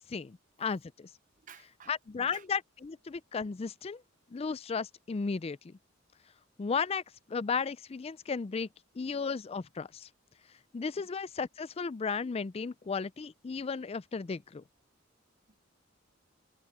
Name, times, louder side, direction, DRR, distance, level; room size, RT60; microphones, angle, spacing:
voice 1, 0.1-1.1 1.9-4.0 4.3-5.8 6.6-7.0 7.3-8.7 9.0-10.1 10.7-14.6, left 5 dB, 30° left, 0.4 m, -34 dB
voice 2, 1.5-2.4 15.5-15.6, right 6 dB, 40° right, 0.8 m, -54 dB
head